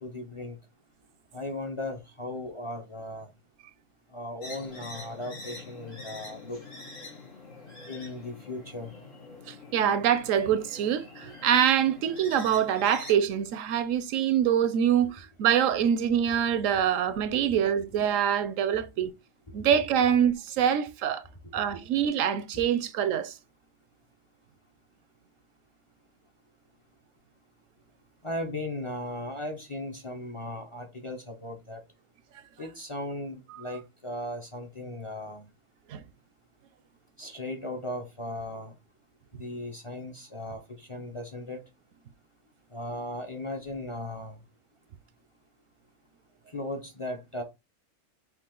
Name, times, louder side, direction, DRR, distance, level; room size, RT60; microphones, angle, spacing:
voice 1, 0.0-0.6 1.3-3.3 4.1-6.6 7.9-8.9 15.0-15.1 17.5-17.6 22.5-22.6 28.2-31.8 32.6-35.4 37.2-38.7 39.4-41.6 42.7-44.4 46.5-47.4, left 1 dB, 30° left, 0.7 m, -37 dB
sound 1, 4.4-13.1, left 2 dB, 75° left, 2.4 m, -45 dB
voice 2, 9.5-19.1 19.5-21.2 21.5-23.3 35.9-36.0, right 9 dB, 80° right, 0.9 m, -25 dB
5.7 x 2.4 x 3.7 m
omnidirectional pair, 1.3 m